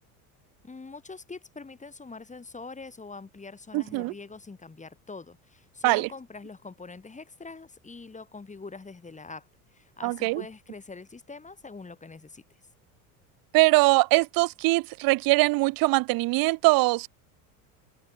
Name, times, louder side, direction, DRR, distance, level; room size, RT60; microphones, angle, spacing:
voice 1, 0.6-9.5 9.7-12.4, left 4 dB, 15° left, 2.6 m, -44 dB
voice 2, 3.7-4.1 5.8-6.1 10.0-10.4 13.5-17.1, right 23 dB, 50° right, 0.7 m, -22 dB
hypercardioid pair, 90°, 45 cm